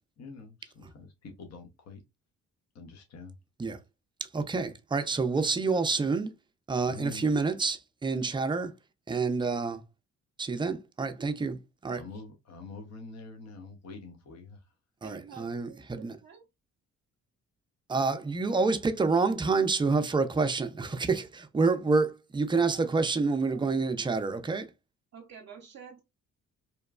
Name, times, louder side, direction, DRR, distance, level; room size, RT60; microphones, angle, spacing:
voice 1, 0.2-2.0 2.7-3.4 6.9-7.3 11.9-14.7, left 3 dB, 55° left, 0.8 m, -46 dB
voice 2, 4.2-6.3 6.7-8.7 9.1-9.8 10.4-12.0 15.0-16.2 17.9-24.7, right 4 dB, 15° right, 0.4 m, -28 dB
voice 3, 15.0-16.4 22.7-22.8 23.5-24.0 25.1-26.0, right 7 dB, 55° right, 0.6 m, -50 dB
2.9 x 2.2 x 2.3 m
supercardioid pair, 65°, 31 cm